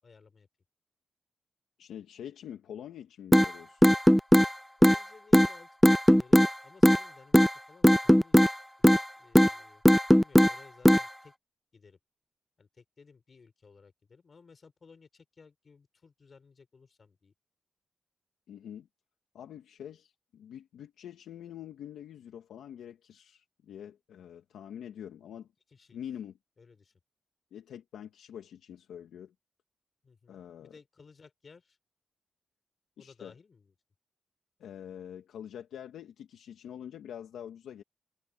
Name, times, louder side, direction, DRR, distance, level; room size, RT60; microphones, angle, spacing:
voice 1, 0.0-0.5 4.8-9.8 10.1-11.3 11.7-12.0 12.6-17.3 25.7-26.0 26.6-27.0 30.0-31.8 33.0-33.7, left 5 dB, 55° left, 6.8 m, -57 dB
voice 2, 1.8-3.9 18.5-18.9 19.3-25.5 25.9-26.3 27.5-29.3 30.3-30.7 33.0-33.3 34.6-37.8, left 9 dB, 90° left, 1.8 m, -45 dB
sound 1, 3.3-3.5 3.8-4.5 4.8-5.0 5.3-5.5 5.8-6.5 6.8-7.0 7.3-7.5 7.8-8.5 8.8-9.0 9.3-9.5 9.8-10.5 10.8-11.0, equal, 5° left, 0.4 m, -18 dB
cardioid pair, 50°, 0 cm